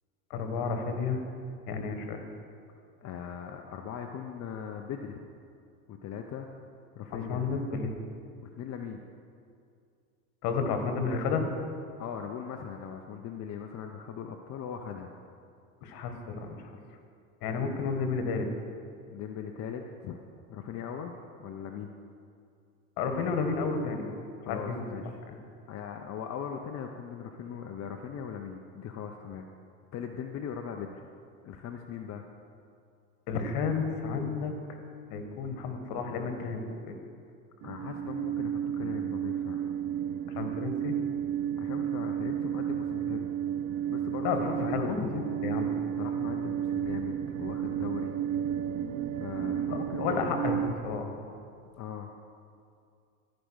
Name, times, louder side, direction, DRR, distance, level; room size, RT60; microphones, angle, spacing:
voice 1, 0.3-1.2 1.7-2.2 7.1-7.9 10.4-11.5 15.8-16.7 17.4-18.5 23.0-24.1 24.5-24.8 25.3-25.4 33.3-34.5 35.1-37.0 40.3-41.0 44.2-45.7 50.0-51.2, left 5 dB, 55° left, 5 dB, 1.7 m, -31 dB
voice 2, 3.0-5.2 5.9-6.5 6.9-7.4 8.4-9.0 12.0-15.1 19.1-20.2 20.5-22.0 24.4-25.2 25.7-29.4 29.9-31.1 31.4-32.2 37.6-39.8 41.6-43.3 43.7-45.0 46.0-48.1 49.2-50.5 51.8-52.1, left 7 dB, 35° left, 3 dB, 0.7 m, -40 dB
sound 1, 37.6-50.7, right 9 dB, 65° right, 0.9 m, -32 dB
14.5 x 5.3 x 6.3 m, 2.4 s
hypercardioid pair, 85°, 44 cm